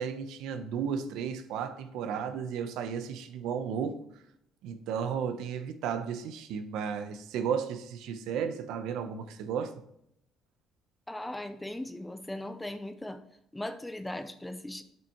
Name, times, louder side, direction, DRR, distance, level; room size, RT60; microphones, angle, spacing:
voice 1, 0.0-4.2 4.6-9.7, right 7 dB, 85° right, 0.9 m, -34 dB
voice 2, 11.1-13.2 13.5-14.8, left 1 dB, 5° left, 0.6 m, -38 dB
8.1 x 7.1 x 3.1 m
cardioid pair, 165°, 0 cm